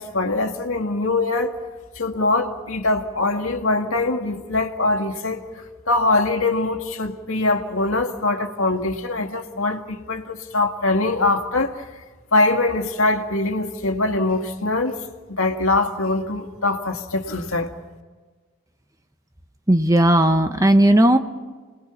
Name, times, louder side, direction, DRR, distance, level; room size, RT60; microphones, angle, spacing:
voice 1, 0.0-1.5 2.0-11.8 12.3-15.0 15.3-17.7, left 2 dB, 75° left, 2.1 m, -23 dB
voice 2, 19.7-21.2, right 1 dB, 15° right, 0.9 m, -15 dB
29.5 x 20.5 x 5.8 m
head